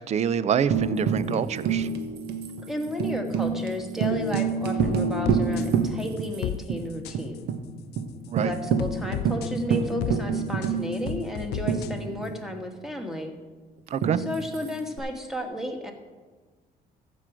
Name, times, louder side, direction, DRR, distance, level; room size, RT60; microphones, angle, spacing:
voice 1, 0.1-1.9 8.3-8.5 13.9-14.2, right 8 dB, 40° right, 16 dB, 0.5 m, -26 dB
Tambourine, 0.7-6.4 6.7-6.8 7.1-7.6 8.0-8.1 8.4-12.5 14.0-15.0, right 6 dB, 75° right, 1.3 m, -27 dB
voice 2, 2.7-7.4 8.4-13.3 14.2-15.9, left 1 dB, ahead, 4 dB, 1.4 m, -33 dB
sound 1, 4.4-5.7 6.2-6.6 6.9-7.4 7.9-8.0 8.5-10.2 10.6-11.9, left 14 dB, 75° left, 0.5 m, -33 dB
14.5 x 6.1 x 4.9 m, 1.3 s
cardioid pair, 110°, 17 cm